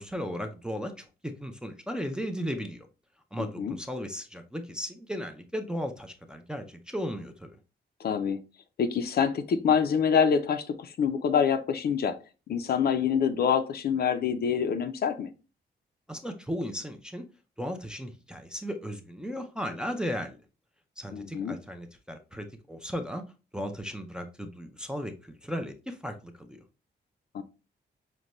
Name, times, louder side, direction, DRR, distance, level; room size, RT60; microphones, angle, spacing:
voice 1, 0.0-2.9 3.3-7.6 16.1-17.2 17.6-20.4 21.0-23.2 23.5-26.6, equal, 5° right, 4 dB, 0.4 m, -36 dB
voice 2, 3.4-3.8 8.0-8.4 8.8-12.2 12.5-15.3 21.1-21.6 27.3-27.4, left 7 dB, 60° left, 9 dB, 0.4 m, -26 dB
5.1 x 2.2 x 2.9 m, 0.32 s
wide cardioid pair, 140°, 19 cm